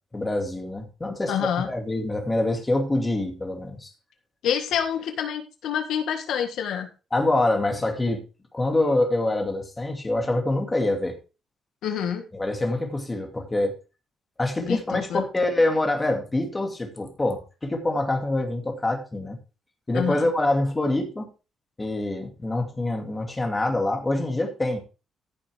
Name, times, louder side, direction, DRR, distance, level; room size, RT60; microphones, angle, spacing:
voice 1, 0.1-3.9 7.1-8.2 8.5-11.2 12.3-13.8 14.4-19.4 19.9-21.3 21.8-24.8, left 2 dB, 15° left, 2.4 m, -25 dB
voice 2, 1.3-1.7 4.4-6.9 11.8-12.2 14.6-15.2 19.9-20.3, left 8 dB, 80° left, 1.7 m, -27 dB
14.5 x 7.0 x 3.5 m
cardioid pair, 140°, 0 cm